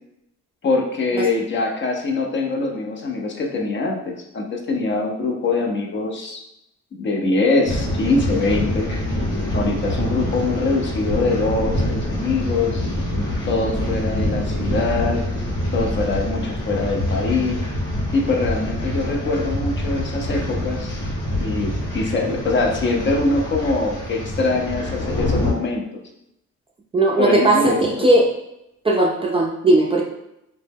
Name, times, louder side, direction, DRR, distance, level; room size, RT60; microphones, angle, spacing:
voice 1, 0.6-6.4 6.9-8.9 9.5-12.8 13.4-15.2 15.7-17.6 18.1-20.9 21.4-25.8 27.2-28.1, left 3 dB, 40° left, 1 dB, 0.5 m, -23 dB
sound 1, 7.6-25.5, left 1 dB, 85° left, 0.8 m, -25 dB
voice 2, 26.9-28.3 28.8-30.0, right 2 dB, 20° right, -2 dB, 0.3 m, -17 dB
2.1 x 2.0 x 3.3 m, 0.81 s
cardioid pair, 90°, 30 cm